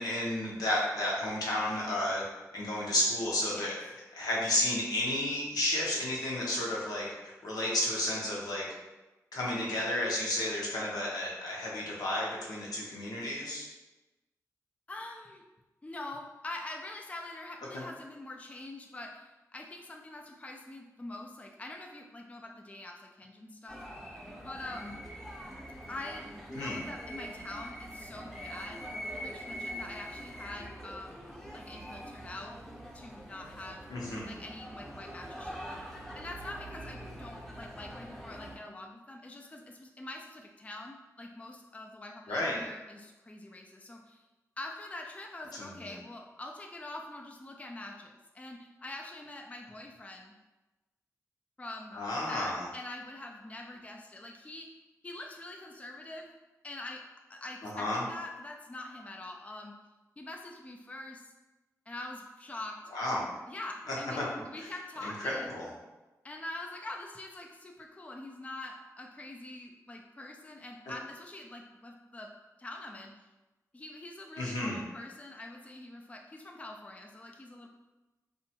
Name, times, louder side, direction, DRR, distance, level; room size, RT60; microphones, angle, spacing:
voice 1, 0.0-2.2 2.5-3.7 4.1-8.7 9.3-13.7 17.7-17.8 26.6-26.8 33.9-34.3 42.3-42.6 45.6-45.9 51.9-52.6 57.7-58.0 62.9-63.3 63.9-64.2 65.0-65.7 74.4-74.8, left 1 dB, 80° left, -4 dB, 0.7 m, -32 dB
voice 2, 14.9-15.4 15.8-23.8 24.4-25.0 25.9-26.2 26.5-31.2 31.5-32.5 32.9-33.8 34.3-35.8 36.1-44.3 44.6-50.3 51.6-52.0 52.3-56.3 56.6-57.0 57.3-59.8 60.2-61.3 61.9-62.8 63.5-65.6 66.2-72.3 72.6-73.1 73.7-77.7, left 2 dB, 20° left, 1 dB, 0.3 m, -44 dB
sound 1, 23.7-38.6, equal, 5° left, 0.8 m, -44 dB
2.7 x 2.2 x 2.7 m, 1.1 s
cardioid pair, 45°, 6 cm